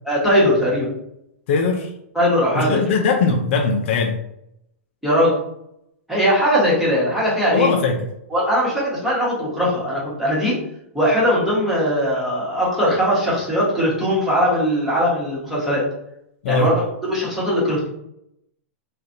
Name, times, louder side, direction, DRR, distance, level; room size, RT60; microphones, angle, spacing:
voice 1, 0.0-0.9 2.1-2.8 5.0-5.4 6.1-7.7 8.3-10.6 10.9-15.8 16.5-17.9, equal, ahead, -8 dB, 1.2 m, -20 dB
voice 2, 1.5-1.9 2.5-4.2 7.5-8.1 16.4-16.7, left 4 dB, 55° left, 3 dB, 0.4 m, -20 dB
3.2 x 2.4 x 2.6 m, 0.78 s
hypercardioid pair, 145°, 7 cm